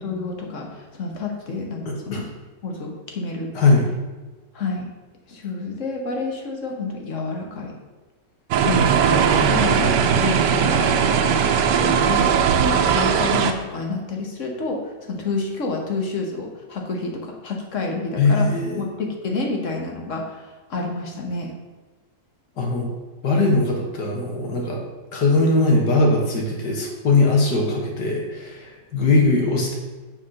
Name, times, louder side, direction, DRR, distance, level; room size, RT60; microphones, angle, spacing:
voice 1, 0.0-2.3 2.6-3.5 4.5-4.9 5.3-7.7 8.6-10.9 11.2-11.5 11.7-18.5 18.7-21.5, left 3 dB, 45° left, 1 dB, 1.4 m, -29 dB
voice 2, 1.9-2.2 3.6-3.9 8.7-8.9 18.2-18.8 22.6-22.9 23.2-24.8 25.1-28.6 28.9-29.8, left 2 dB, 70° left, 0 dB, 2.1 m, -20 dB
sound 1, 8.5-13.5, right 7 dB, 75° right, 1.3 m, -19 dB
7.1 x 4.5 x 6.4 m, 1.2 s
omnidirectional pair, 1.9 m